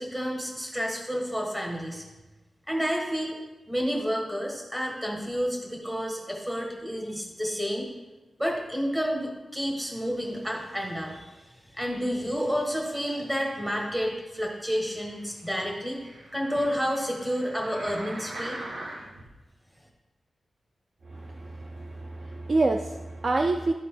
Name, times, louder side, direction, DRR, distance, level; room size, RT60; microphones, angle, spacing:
voice 1, 0.0-2.0 2.7-3.4 3.7-7.9 8.4-11.3 11.8-16.0 16.3-18.6, equal, 15° right, -1 dB, 1.7 m, -30 dB
sound 1, 14.7-19.3 19.9-20.0, right 1 dB, 85° right, 1.4 m, -42 dB
voice 2, 21.0-23.7, right 2 dB, 45° right, 3 dB, 0.4 m, -27 dB
12.0 x 4.1 x 3.8 m, 1.1 s
wide cardioid pair, 130°, 0 cm